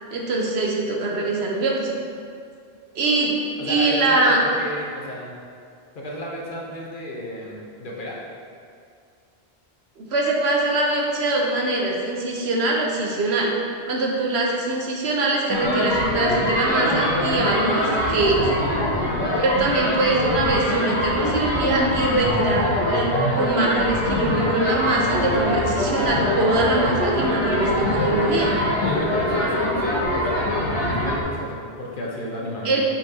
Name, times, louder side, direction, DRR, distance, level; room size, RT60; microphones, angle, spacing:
voice 1, 0.1-2.0 2.9-3.3 3.6-4.4 10.0-13.5 13.9-18.4 19.4-23.1 23.4-28.6 32.6-32.9, right 2 dB, 75° right, -1 dB, 1.1 m, -23 dB
voice 2, 3.6-5.3 5.9-8.2 19.0-19.3 28.6-32.9, equal, 50° left, -3 dB, 1.0 m, -33 dB
sound 1, 15.5-31.2, left 1 dB, 25° left, 1.2 m, -23 dB
7.8 x 4.3 x 2.8 m, 2.2 s
omnidirectional pair, 1.1 m